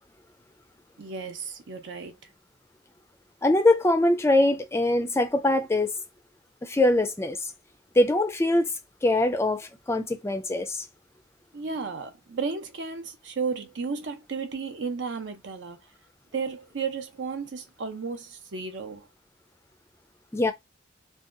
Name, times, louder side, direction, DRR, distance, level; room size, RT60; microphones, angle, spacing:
voice 1, 1.0-2.1 11.5-15.8 16.3-19.1, right 5 dB, 75° right, 0.6 m, -33 dB
voice 2, 3.4-5.9 6.6-7.5 8.0-8.7 9.0-10.9 20.3-20.5, left 1 dB, 15° left, 0.3 m, -23 dB
2.7 x 2.3 x 2.4 m
head